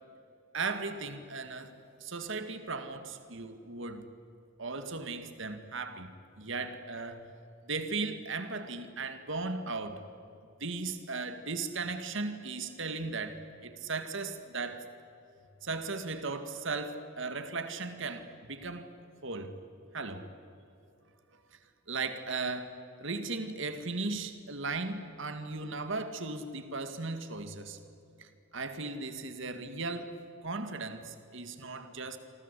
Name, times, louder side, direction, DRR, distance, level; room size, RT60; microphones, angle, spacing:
voice 1, 0.5-1.7 2.0-4.0 4.6-6.1 6.4-7.3 7.7-10.0 10.6-14.8 15.6-18.9 19.2-19.5 19.9-20.3 21.9-27.8 28.2-30.2 30.4-32.2, right 3 dB, 65° right, 9 dB, 2.1 m, -37 dB
28.0 x 24.5 x 8.4 m, 2.6 s
head